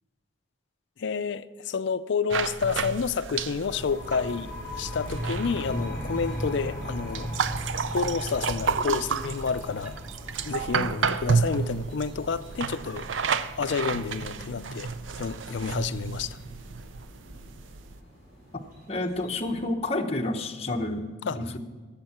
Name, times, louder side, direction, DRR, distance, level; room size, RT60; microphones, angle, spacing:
voice 1, 1.0-7.3 7.9-10.0 10.4-13.1 13.6-16.4 21.3-21.5, left 5 dB, 65° left, 0.5 m, -30 dB
sound 1, 2.3-18.0, right 5 dB, 80° right, 0.5 m, -31 dB
sound 2, 3.2-19.7, equal, 50° right, 3.5 m, -52 dB
sound 3, 3.6-15.0, equal, 10° left, 3.0 m, -38 dB
voice 2, 18.9-21.6, left 2 dB, 35° left, 0.9 m, -30 dB
12.5 x 7.4 x 5.9 m
head